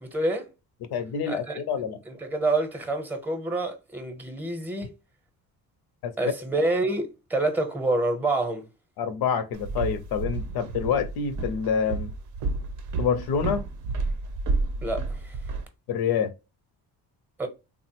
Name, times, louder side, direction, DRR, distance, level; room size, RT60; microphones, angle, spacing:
voice 1, 0.0-0.5 1.2-1.6 2.0-4.9 6.2-8.7 14.8-15.4 17.4-17.5, right 2 dB, 5° right, 0.7 m, -27 dB
voice 2, 0.9-2.0 6.0-6.1 9.0-12.1 13.0-13.7 15.9-16.3, left 7 dB, 75° left, 0.6 m, -27 dB
Walk footsteps, 9.5-15.6, right 3 dB, 50° right, 0.6 m, -31 dB
3.4 x 2.0 x 2.8 m
cardioid pair, 100°, 38 cm